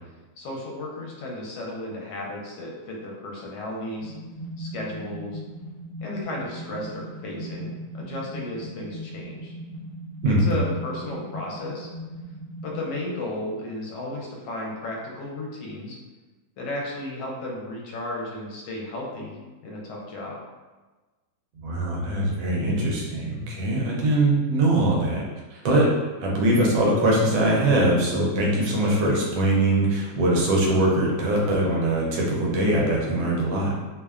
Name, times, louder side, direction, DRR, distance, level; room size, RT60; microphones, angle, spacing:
voice 1, 0.4-4.1 4.6-5.4 6.0-9.5 10.3-11.9 12.6-16.0 16.6-20.4, left 1 dB, 80° left, -3 dB, 1.3 m, -34 dB
sound 1, 4.0-12.9, right 1 dB, 55° left, 0.9 m, -38 dB
voice 2, 10.2-10.6 21.6-25.2 25.5-33.9, right 1 dB, 75° right, -3 dB, 1.3 m, -22 dB
3.1 x 2.1 x 2.3 m, 1.3 s
omnidirectional pair, 1.9 m